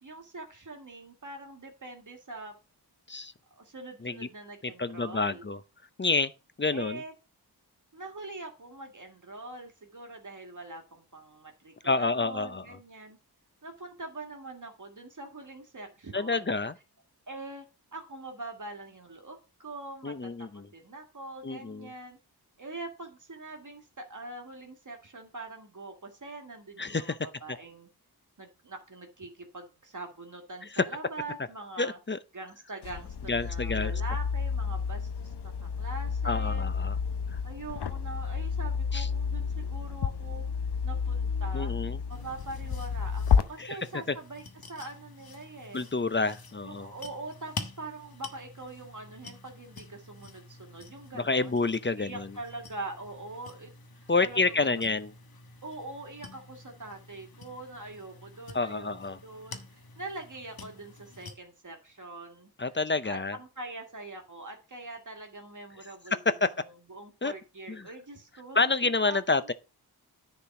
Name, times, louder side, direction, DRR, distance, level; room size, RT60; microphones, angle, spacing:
voice 1, 0.0-2.5 3.6-5.4 6.7-7.1 7.9-13.2 13.6-16.5 17.3-17.7 17.9-20.3 20.7-22.2 22.6-27.9 28.4-32.0 32.3-36.7 37.4-40.4 40.8-41.8 42.1-44.4 44.7-45.9 46.6-51.6 52.0-53.7 54.0-54.8 55.6-62.5 63.0-66.2 66.5-68.7 69.0-69.5, right 2 dB, 50° right, 1.9 m, -43 dB
voice 2, 4.6-5.6 6.0-6.3 6.6-7.0 11.8-12.8 16.1-16.7 20.0-20.7 21.4-21.9 26.8-27.2 30.7-30.9 31.8-32.2 33.3-33.9 36.2-37.0 38.9-39.1 41.5-42.0 43.6-43.8 45.7-46.9 51.1-52.3 54.1-55.1 58.5-59.2 62.6-63.4 66.1-66.5 67.2-67.3 67.7-67.9 68.5-69.5, left 3 dB, 30° left, 0.7 m, -28 dB
sound 1, 32.8-43.4, left 6 dB, 85° left, 0.9 m, -30 dB
sound 2, 42.1-61.4, left 3 dB, 65° left, 1.3 m, -48 dB
10.0 x 4.5 x 5.9 m
wide cardioid pair, 80°, 39 cm